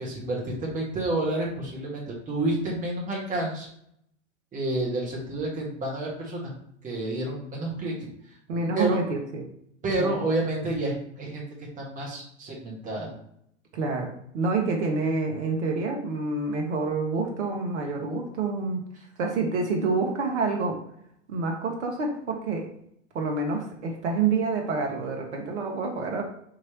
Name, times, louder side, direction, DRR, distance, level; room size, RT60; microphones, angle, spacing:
voice 1, 0.0-3.7 4.5-6.5 6.8-7.9 8.7-9.0 9.8-11.4 11.8-13.1, right 2 dB, 20° right, -3 dB, 1.3 m, -29 dB
voice 2, 8.5-9.4 10.0-10.1 13.7-18.8 19.2-20.8 21.3-22.7 23.1-26.2, right 4 dB, 65° right, 2 dB, 1.0 m, -27 dB
4.9 x 3.1 x 2.9 m, 0.72 s
figure-of-eight pair, 90°, 38 cm